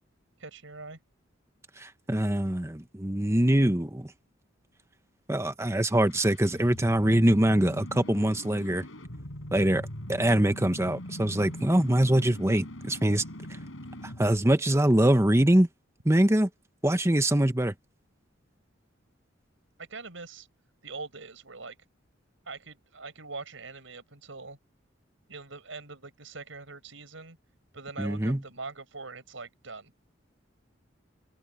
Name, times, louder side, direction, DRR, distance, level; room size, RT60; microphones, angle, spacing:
voice 1, 0.4-1.0 19.8-20.5 20.8-21.8 22.5-24.6 25.3-27.4 27.7-29.9, right 3 dB, 80° right, 5.4 m, -42 dB
voice 2, 1.8-4.1 5.3-8.8 9.5-9.8 10.1-13.2 14.2-15.7 16.0-16.5 16.8-17.7 28.0-28.4, right 1 dB, 15° right, 1.2 m, -23 dB
sound 1, 5.8-14.4, equal, 85° left, 5.6 m, -41 dB
open air
head